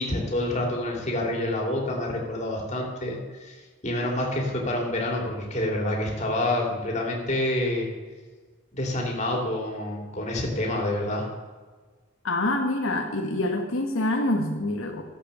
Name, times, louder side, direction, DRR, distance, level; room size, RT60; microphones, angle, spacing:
voice 1, 0.0-3.6 3.8-7.9 8.7-11.3, left 1 dB, 35° left, 0 dB, 2.9 m, -27 dB
voice 2, 12.2-15.0, left 2 dB, 80° left, 2 dB, 1.5 m, -26 dB
13.5 x 8.1 x 6.8 m, 1.4 s
head